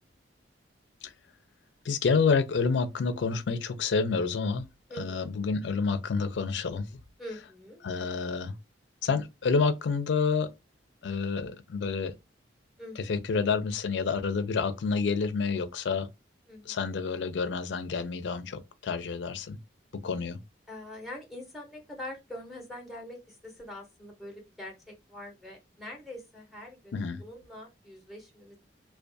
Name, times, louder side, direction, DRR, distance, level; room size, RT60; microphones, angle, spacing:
voice 1, 1.8-4.7 5.0-7.0 7.8-8.6 9.0-10.5 11.0-12.1 13.0-16.1 16.6-19.6 19.9-20.4 26.9-27.2, left 5 dB, 70° left, 0.4 m, -28 dB
voice 2, 4.9-5.3 7.2-7.8 12.8-13.1 16.5-16.8 20.7-28.6, left 1 dB, ahead, 0.6 m, -44 dB
2.2 x 2.2 x 2.5 m
head